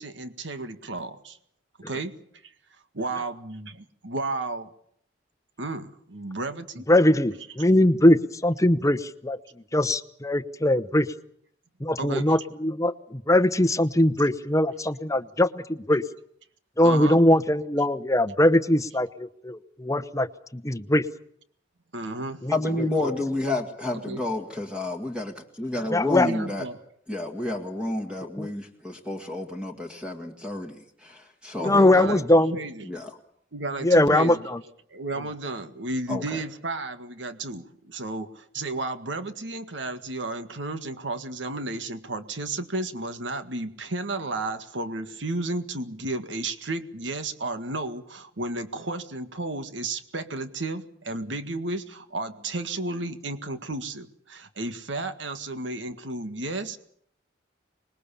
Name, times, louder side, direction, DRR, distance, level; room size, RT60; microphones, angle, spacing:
voice 1, 0.0-1.4 1.9-2.1 2.4-2.5 2.9-4.7 5.6-6.9 12.0-12.4 16.8-17.2 21.9-22.4 24.1-24.2 26.2-26.8 31.6-32.9 33.5-34.4 34.9-56.8, right 2 dB, 70° right, 9 dB, 1.8 m, -33 dB
voice 2, 6.9-9.4 9.7-11.1 11.8-16.0 16.8-20.3 20.5-21.0 22.4-22.5 25.9-26.3 28.4-28.5 31.6-32.5 33.8-34.6, left 1 dB, 15° left, 13 dB, 1.0 m, -21 dB
voice 3, 22.5-26.7 27.1-32.1 32.8-33.1 36.1-36.4, left 2 dB, 5° right, 3 dB, 2.0 m, -30 dB
25.5 x 21.0 x 7.0 m, 0.67 s
head